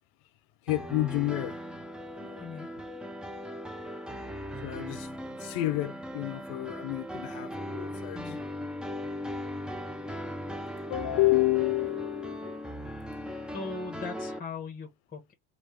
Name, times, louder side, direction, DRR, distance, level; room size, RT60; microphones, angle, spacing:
voice 1, 0.7-1.6 2.1-2.7 4.6-8.3 10.9-12.8, left 18 dB, 55° left, 0.6 m, -30 dB
sound 1, 0.7-14.4, equal, ahead, 0.5 m, -38 dB
voice 2, 13.5-15.3, left 4 dB, 20° left, 1.4 m, -39 dB
3.1 x 2.5 x 3.3 m
hypercardioid pair, 80°, 43 cm